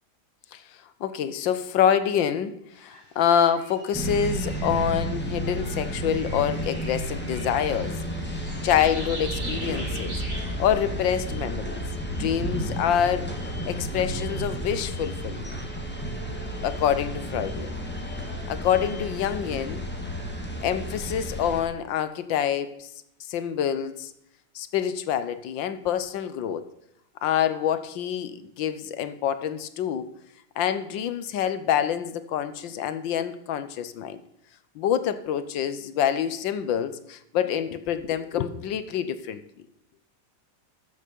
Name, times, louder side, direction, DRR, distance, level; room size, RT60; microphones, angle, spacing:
voice 1, 1.0-8.0 8.3-10.2 10.6-11.8 12.1-13.3 13.7-15.6 16.6-17.8 18.5-19.9 20.6-22.9 23.3-24.1 24.5-26.6 27.2-30.1 30.6-34.2 34.7-39.4, left 9 dB, 85° left, 12 dB, 1.6 m, -26 dB
sound 1, 2.8-5.1 5.6-11.1, right 1 dB, 40° right, 4.4 m, -42 dB
sound 2, 3.9-21.6, right 1 dB, 5° left, 1.7 m, -32 dB
13.0 x 7.4 x 5.2 m, 0.79 s
omnidirectional pair, 2.0 m